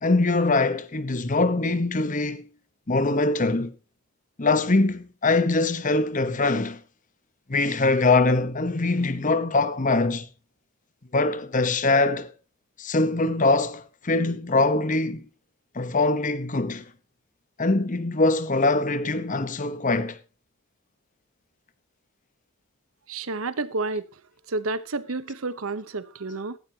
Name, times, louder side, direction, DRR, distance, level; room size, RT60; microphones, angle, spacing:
voice 1, 0.0-2.5 2.9-3.7 4.4-6.8 7.5-10.3 11.1-12.3 12.8-15.3 15.7-16.8 17.6-20.2, left 3 dB, 40° left, 1.0 m, -23 dB
voice 2, 23.1-24.2 24.5-26.6, right 3 dB, 75° right, 1.0 m, -30 dB
16.5 x 14.0 x 2.9 m
head